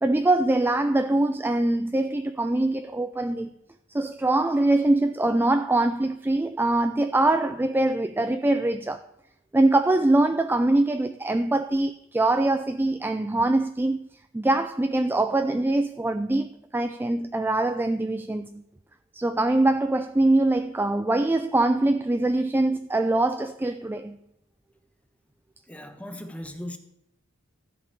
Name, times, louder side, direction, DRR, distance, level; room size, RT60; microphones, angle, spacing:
voice 1, 0.0-3.5 3.9-9.0 9.5-14.0 14.3-18.6 19.1-24.2, right 2 dB, 10° right, 0.3 m, -23 dB
voice 2, 25.7-26.8, left 1 dB, 5° left, 1.2 m, -38 dB
13.5 x 5.3 x 8.4 m
head